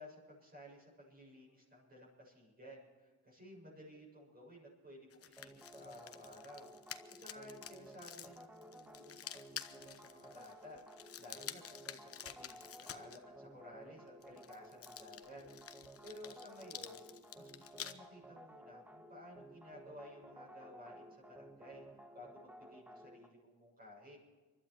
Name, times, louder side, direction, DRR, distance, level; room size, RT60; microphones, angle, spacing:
voice 1, 0.0-15.4 15.7-17.0 17.3-21.9 22.1-24.2, left 1 dB, 30° right, -4 dB, 7.1 m, -55 dB
sound 1, 5.1-13.2 14.2-17.9, left 9 dB, 50° left, 1.0 m, -50 dB
sound 2, 5.4-23.3, right 1 dB, 5° right, 1.5 m, -56 dB
24.5 x 12.0 x 4.7 m, 1.4 s
cardioid pair, 90°, 30 cm